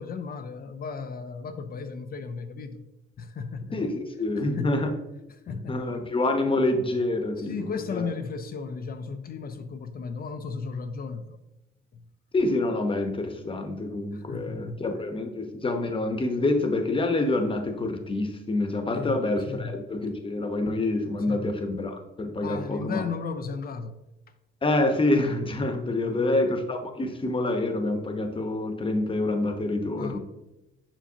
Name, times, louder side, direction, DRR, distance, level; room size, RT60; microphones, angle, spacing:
voice 1, 0.0-2.8 3.2-3.8 4.6-4.7 5.5-5.8 7.4-11.4 11.9-12.0 14.1-14.8 18.9-19.2 19.5-19.7 21.3-21.5 22.4-24.0 26.0-26.4 30.0-30.2, left 5 dB, 50° left, 0.5 m, -35 dB
voice 2, 3.7-4.9 5.5-8.1 12.3-23.0 24.6-30.2, left 2 dB, 25° left, 0.9 m, -27 dB
7.2 x 5.4 x 2.8 m
cardioid pair, 90°, 20 cm